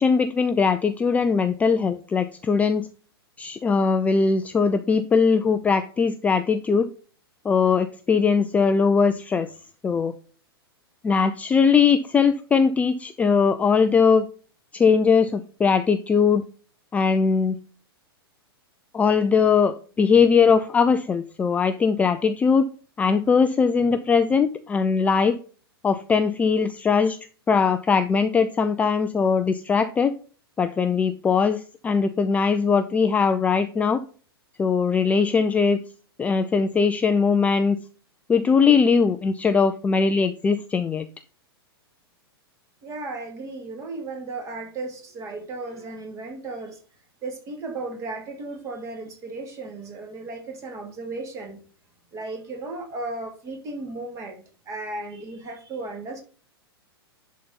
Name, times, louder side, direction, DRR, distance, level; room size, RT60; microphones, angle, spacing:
voice 1, 0.0-2.9 3.4-6.9 7.4-9.5 9.8-10.1 11.0-14.3 14.7-16.5 16.9-17.6 18.9-22.7 23.0-25.4 25.8-27.2 27.5-30.1 30.6-34.0 34.6-35.8 36.2-37.8 38.3-41.1, left 5 dB, 10° left, 9 dB, 0.4 m, -20 dB
voice 2, 42.8-46.8 47.2-51.6 52.1-56.2, right 3 dB, 25° right, 4 dB, 2.3 m, -35 dB
10.5 x 4.2 x 3.9 m, 0.40 s
figure-of-eight pair, 105°, 13 cm